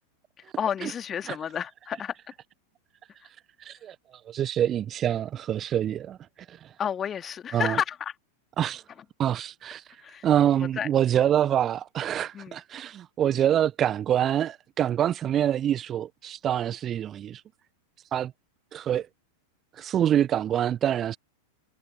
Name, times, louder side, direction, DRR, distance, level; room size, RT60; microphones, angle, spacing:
voice 1, 0.6-2.2 6.8-8.1 10.0-10.3 10.7-10.9 12.3-12.6, left 8 dB, 25° left, 2.5 m, -30 dB
voice 2, 3.6-4.0 4.3-6.2 6.5-6.7 7.5-7.8 8.6-8.8 9.2-9.8 10.2-17.4 18.1-18.3 18.7-19.1 19.8-21.2, right 10 dB, 30° right, 1.0 m, -26 dB
figure-of-eight pair, 90°, 0 cm